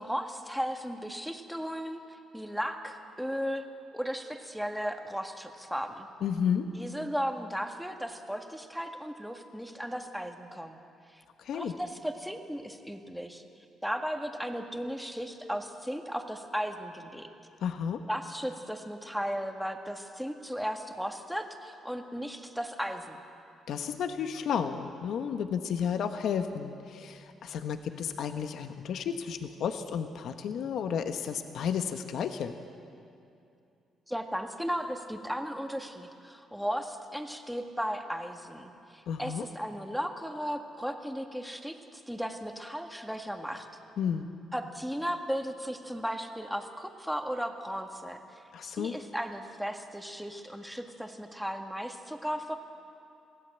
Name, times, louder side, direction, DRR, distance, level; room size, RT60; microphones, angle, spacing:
voice 1, 0.0-2.0 2.3-3.6 3.9-6.1 6.8-10.8 11.5-13.4 13.8-17.3 18.1-23.2 34.1-43.7 44.5-48.2 48.6-52.6, equal, ahead, 4 dB, 1.8 m, -35 dB
voice 2, 6.2-6.7 11.4-11.7 17.6-18.0 23.7-32.5 39.1-39.4 44.0-44.3 48.5-49.0, left 7 dB, 70° left, 8 dB, 1.1 m, -32 dB
23.0 x 16.0 x 8.0 m, 2.6 s
cardioid pair, 90°, 0 cm